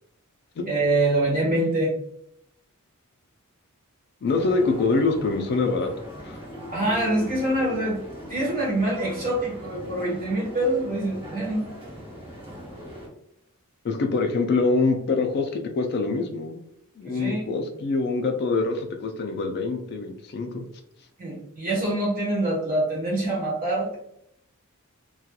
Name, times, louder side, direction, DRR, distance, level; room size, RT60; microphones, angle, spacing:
voice 1, 0.6-1.9 6.7-8.0 8.3-11.6 17.0-17.4 21.2-24.0, right 1 dB, 40° right, -4 dB, 1.1 m, -25 dB
voice 2, 4.2-5.9 6.2-6.4 13.8-16.6 17.0-20.7, left 3 dB, 45° left, 4 dB, 0.3 m, -25 dB
sound 1, 4.3-13.1, equal, 25° right, 0.8 m, -40 dB
2.8 x 2.3 x 2.2 m, 0.74 s
head